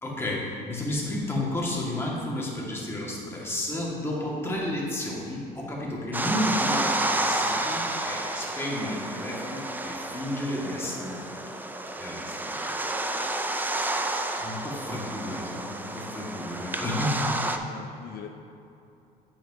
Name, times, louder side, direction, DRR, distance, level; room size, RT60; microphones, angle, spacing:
voice 1, 0.0-11.5 12.0-12.7 14.4-17.3, left 1 dB, 15° left, -4 dB, 1.7 m, -32 dB
sound 1, 6.1-17.6, right 2 dB, 10° right, 0.4 m, -30 dB
voice 2, 14.0-14.5 17.6-18.3, left 9 dB, 65° left, 4 dB, 0.5 m, -44 dB
8.9 x 6.9 x 2.7 m, 2.8 s
cardioid pair, 110°, 17 cm